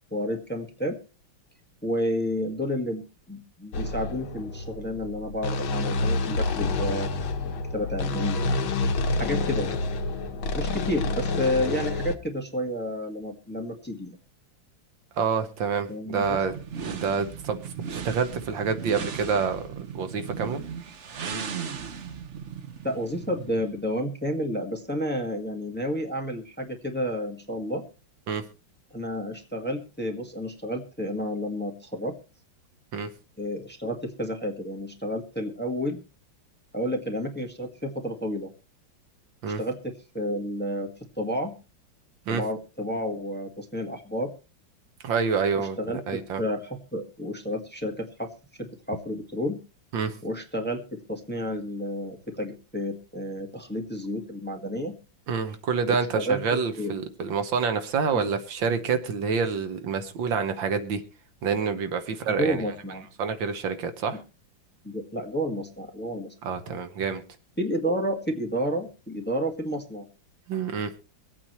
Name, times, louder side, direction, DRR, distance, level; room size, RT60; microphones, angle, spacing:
voice 1, 0.1-1.0 1.8-3.0 3.3-7.1 7.7-8.6 9.2-9.8 10.5-14.2 15.9-16.4 22.8-27.8 28.9-32.1 33.4-36.0 36.7-38.5 39.4-40.9 41.2-41.5 42.3-44.3 45.5-48.3 48.6-49.6 50.2-55.0 55.9-56.9 58.1-58.2 62.3-63.1 64.1-64.2 64.8-66.3 67.6-70.1, equal, 5° left, 2 dB, 1.6 m, -31 dB
sound 1, 3.7-12.1, left 3 dB, 85° left, 1.9 m, -28 dB
voice 2, 15.2-16.5 16.8-17.6 17.9-20.6 28.3-28.4 32.9-33.1 39.4-39.6 42.3-42.4 45.0-45.8 46.1-46.4 49.9-50.2 55.3-61.0 61.4-62.6 63.2-64.2 66.4-67.2 70.5-70.9, right 5 dB, 75° right, 9 dB, 1.8 m, -27 dB
sound 2, 16.2-23.8, right 6 dB, 45° right, 1.0 m, -37 dB
24.0 x 8.7 x 3.1 m, 0.31 s
omnidirectional pair, 2.2 m